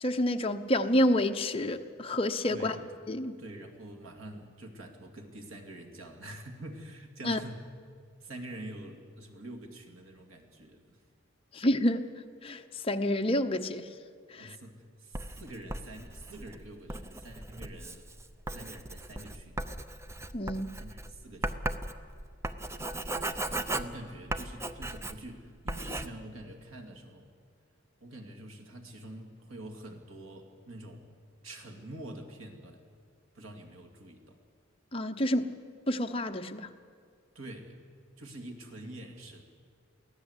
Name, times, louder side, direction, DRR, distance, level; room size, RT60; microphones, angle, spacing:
voice 1, 0.0-2.7 3.1-3.4 7.2-7.4 11.5-12.1 12.4-13.9 14.3-14.6 20.3-20.7 34.9-35.5 35.9-36.7, left 1 dB, 30° left, 5 dB, 0.9 m, -28 dB
voice 2, 2.5-2.8 3.4-7.6 8.2-11.0 14.4-18.0 18.5-19.6 20.7-21.6 22.8-22.9 23.7-27.3 28.0-31.1 31.4-32.8 33.3-34.4 37.3-37.8 38.2-39.4, right 1 dB, 85° right, 3 dB, 2.5 m, -46 dB
Writing, 15.1-25.4 25.7-26.1, right 1 dB, 15° right, 0.6 m, -37 dB
23.5 x 16.5 x 8.2 m, 2.2 s
head